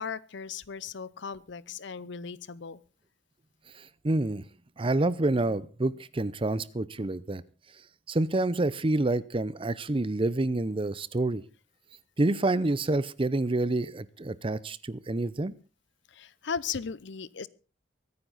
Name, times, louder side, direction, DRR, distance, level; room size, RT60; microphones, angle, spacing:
voice 1, 0.0-2.8 16.1-17.5, left 6 dB, 65° left, 20 dB, 0.7 m, -37 dB
voice 2, 4.0-4.4 4.8-7.4 8.1-11.4 12.2-15.5, right 2 dB, 30° right, 18 dB, 0.6 m, -28 dB
23.5 x 9.5 x 4.1 m, 0.34 s
head